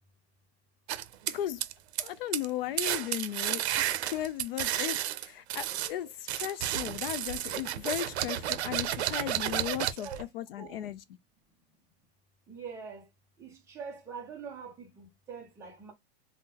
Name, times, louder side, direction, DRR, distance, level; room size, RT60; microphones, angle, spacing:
sound 1, 0.9-2.1 2.3-2.5 2.8-5.9 6.3-10.2, right 12 dB, 80° right, 0.6 m, -32 dB
voice 1, 1.3-1.6 2.0-3.9 4.1-11.0, left 12 dB, 60° left, 0.5 m, -36 dB
voice 2, 10.6-10.9 12.5-13.0 13.4-15.9, right 6 dB, 10° right, 0.5 m, -44 dB
3.6 x 2.0 x 2.8 m
supercardioid pair, 170°, 33 cm